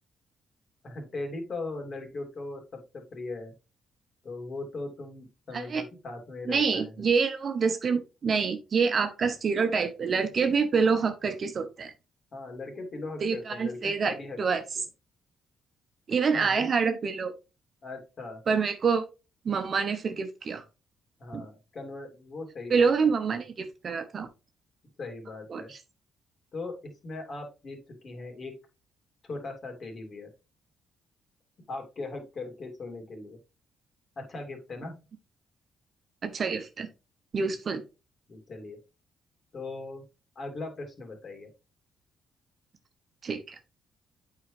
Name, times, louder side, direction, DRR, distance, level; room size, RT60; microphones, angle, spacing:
voice 1, 0.8-3.5 4.2-6.9 12.3-14.6 16.3-16.7 17.8-18.4 21.2-22.9 25.0-25.7 26.5-26.8 27.0-28.5 29.3-30.3 31.7-33.4 34.2-35.0 37.4-37.5 38.3-38.8 39.5-40.0 40.3-41.5, left 3 dB, 45° left, 3 dB, 2.9 m, -39 dB
voice 2, 6.5-11.9 13.2-14.6 16.1-17.3 18.5-19.0 19.4-20.6 21.3-21.4 22.7-24.3 25.5-25.8 36.2-36.9 37.3-37.8 43.2-43.6, right 5 dB, 45° right, 8 dB, 1.0 m, -27 dB
8.7 x 4.8 x 3.2 m, 0.29 s
cardioid pair, 90°, 0 cm